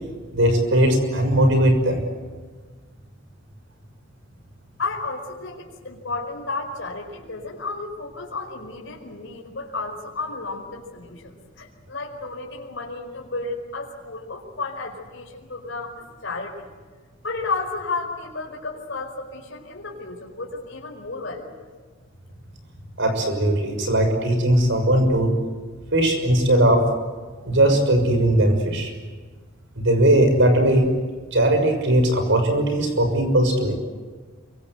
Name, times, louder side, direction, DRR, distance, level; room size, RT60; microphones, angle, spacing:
voice 1, 0.3-2.1 23.0-25.3 25.9-26.8 27.4-28.9 29.8-30.9 31.3-33.8, right 1 dB, 65° right, 6 dB, 6.3 m, -19 dB
voice 2, 4.8-16.7 17.2-21.7, left 3 dB, 65° left, 0 dB, 5.0 m, -32 dB
27.5 x 25.0 x 8.0 m, 1.4 s
head